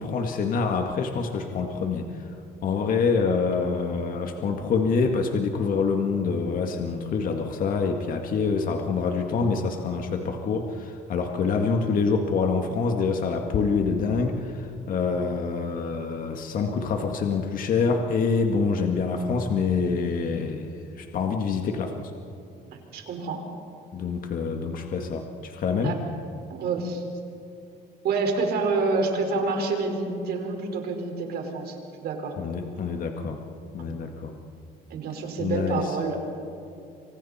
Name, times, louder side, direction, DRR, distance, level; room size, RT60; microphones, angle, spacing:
voice 1, 0.0-2.1 2.6-22.1 23.9-26.0 32.4-33.4 33.7-34.3 35.4-35.9, left 5 dB, 55° left, 3 dB, 2.0 m, -26 dB
voice 2, 22.7-23.4 25.8-26.0 26.5-27.0 28.0-31.7 32.0-32.3 33.8-34.0 34.9-36.2, right 4 dB, 70° right, 3 dB, 4.9 m, -28 dB
29.5 x 26.0 x 4.4 m, 2.7 s
cardioid pair, 110°, 17 cm